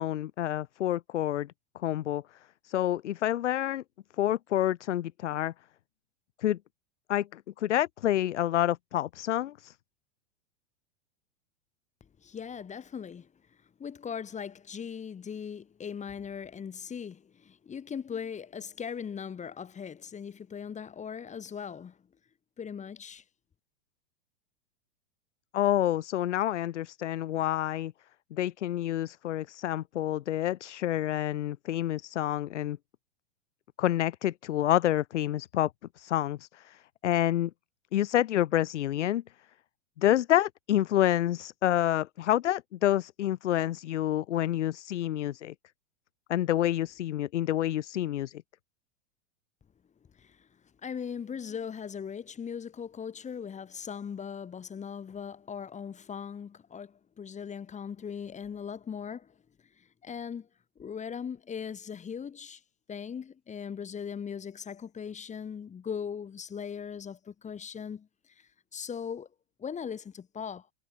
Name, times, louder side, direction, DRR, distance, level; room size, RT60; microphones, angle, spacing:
voice 1, 0.0-1.5 1.8-2.2 2.6-3.8 4.2-5.5 6.4-6.6 7.1-9.7 25.5-27.9 28.3-32.8 33.8-35.7 36.0-37.5 37.9-39.2 40.0-45.5 46.3-48.4, left 12 dB, 75° left, 1.3 m, -28 dB
voice 2, 12.2-13.3 13.8-22.0 22.6-23.2 50.1-50.5 50.8-59.4 59.8-60.5 60.8-62.6 62.9-69.3 69.6-70.7, left 7 dB, 20° left, 2.4 m, -39 dB
hypercardioid pair, 110°, 36 cm